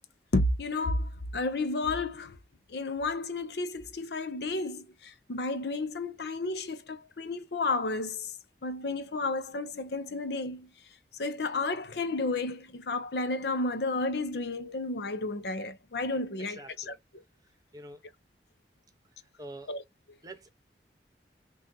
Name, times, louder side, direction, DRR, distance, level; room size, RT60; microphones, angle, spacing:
voice 1, 0.3-2.4 2.7-8.3 8.6-10.7 11.1-17.0 19.7-19.8, left 2 dB, 65° left, 0.6 m, -32 dB
voice 2, 16.6-17.0 17.7-18.0 19.4-19.7 20.2-20.5, right 2 dB, 20° right, 0.9 m, -45 dB
6.1 x 2.4 x 2.7 m
head